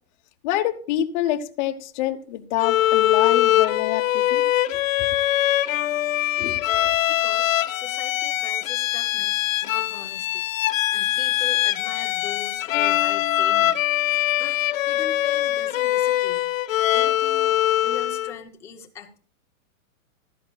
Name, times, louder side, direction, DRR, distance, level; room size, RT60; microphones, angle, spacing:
voice 1, 0.4-4.4 4.7-4.8 6.4-6.6, left 13 dB, 35° left, 0.8 m, -26 dB
Bowed string instrument, 2.6-18.4, left 13 dB, 65° left, 0.9 m, -22 dB
voice 2, 7.1-10.4 10.9-13.8 14.4-16.4 16.9-17.5 17.8-19.2, left 6 dB, 5° left, 0.5 m, -40 dB
14.5 x 12.5 x 2.3 m
supercardioid pair, 160°, 43 cm